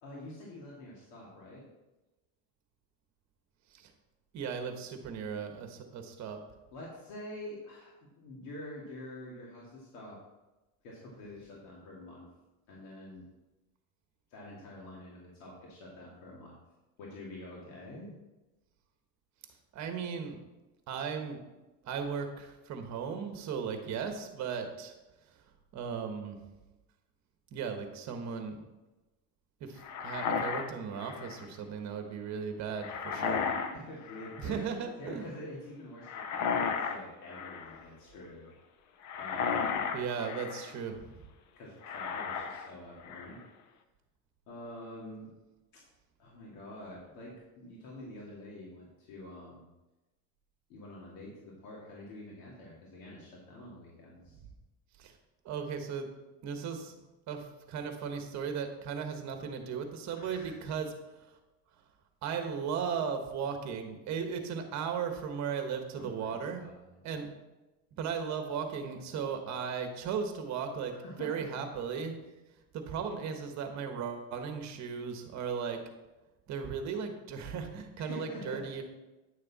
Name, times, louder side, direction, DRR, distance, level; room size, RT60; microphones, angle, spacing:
voice 1, 0.0-1.7 6.7-10.2 10.8-12.3 12.7-13.3 14.3-16.6 17.0-18.2 33.2-34.7 35.0-38.5 39.2-39.9 41.6-43.4 44.5-45.3 46.2-49.6 50.7-54.4 60.2-60.5 66.0-67.1 70.9-71.5 78.0-78.7, left 1 dB, 90° left, -4 dB, 2.5 m, -47 dB
voice 2, 4.3-6.4 19.7-20.4 20.9-21.4 21.8-24.9 25.7-26.4 27.5-28.6 29.6-33.4 34.4-35.3 39.9-41.1 55.0-55.1 55.4-56.1 56.4-56.9 57.3-60.9 62.2-66.7 67.0-67.3 68.0-70.9 71.2-72.1 72.7-75.8 76.5-78.8, right 6 dB, 45° right, 5 dB, 1.4 m, -36 dB
sound 1, 29.8-31.5 32.8-33.8 34.0-34.6 36.0-37.0 37.3-37.8 39.0-40.7 41.8-42.7 43.0-43.4, left 6 dB, 45° left, 0.8 m, -34 dB
10.0 x 6.6 x 4.2 m, 1.1 s
cardioid pair, 140°, 39 cm